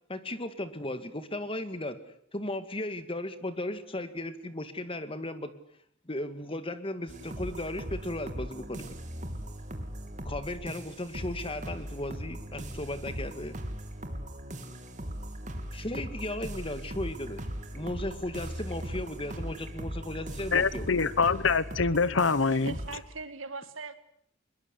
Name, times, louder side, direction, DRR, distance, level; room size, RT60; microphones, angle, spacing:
voice 1, 0.1-2.0 2.3-5.5 6.1-9.0 10.3-13.6 15.7-17.4 17.7-21.1, left 1 dB, 30° left, 2.0 m, -36 dB
sound 1, 7.1-23.0, equal, 40° right, 3.3 m, -39 dB
voice 2, 20.5-22.7, left 4 dB, 75° left, 1.0 m, -25 dB
voice 3, 22.6-23.9, right 4 dB, 85° right, 2.1 m, -40 dB
23.0 x 21.5 x 8.2 m
head